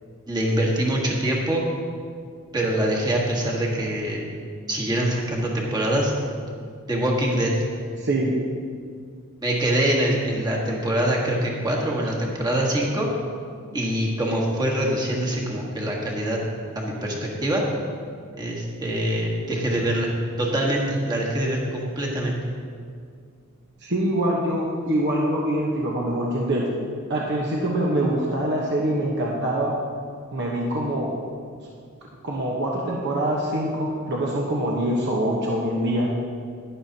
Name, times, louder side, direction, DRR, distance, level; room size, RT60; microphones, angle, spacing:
voice 1, 0.3-1.6 2.5-4.2 4.7-6.1 6.9-7.5 9.4-13.1 13.7-16.4 16.7-17.7 18.4-20.1 20.4-22.4, right 1 dB, 20° right, -3 dB, 1.5 m, -24 dB
voice 2, 8.0-8.3 23.8-26.7 27.1-29.7 30.3-31.1 32.2-36.1, right 1 dB, 55° right, -3 dB, 1.0 m, -24 dB
11.0 x 10.5 x 2.8 m, 2.2 s
head